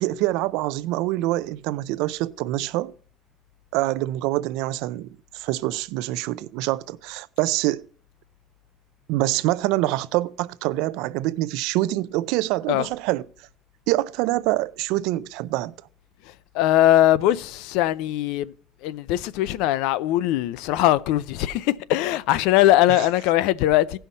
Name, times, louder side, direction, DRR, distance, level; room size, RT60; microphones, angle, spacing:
voice 1, 0.0-2.9 3.7-7.9 9.1-13.3 13.9-15.7 22.9-23.1, right 17 dB, 75° right, 0.5 m, -25 dB
voice 2, 16.5-18.5 18.8-24.0, left 14 dB, 80° left, 0.5 m, -20 dB
17.0 x 5.7 x 4.1 m
cardioid pair, 140°, 0 cm